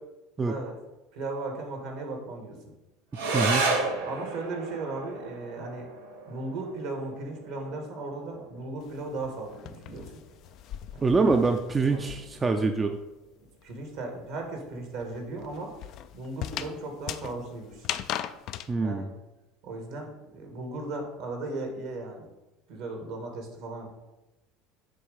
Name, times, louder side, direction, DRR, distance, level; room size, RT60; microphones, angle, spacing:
voice 1, 0.5-0.8 1.1-2.6 4.0-5.9 6.3-10.2 10.9-11.1 11.9-12.2 13.6-15.7 16.1-17.9 18.8-19.1 19.6-22.3 22.7-23.9, right 2 dB, 70° right, 3 dB, 1.7 m, -36 dB
sound 1, 3.1-12.1, right 3 dB, 85° right, 1.0 m, -34 dB
voice 2, 3.3-3.7 11.0-13.0 18.7-19.1, right 3 dB, 25° right, 5 dB, 0.5 m, -25 dB
sound 2, 8.8-12.6 12.8-18.7, left 11 dB, 55° left, 0.4 m, -39 dB
7.5 x 3.1 x 5.2 m, 0.99 s
hypercardioid pair, 75°, 0 cm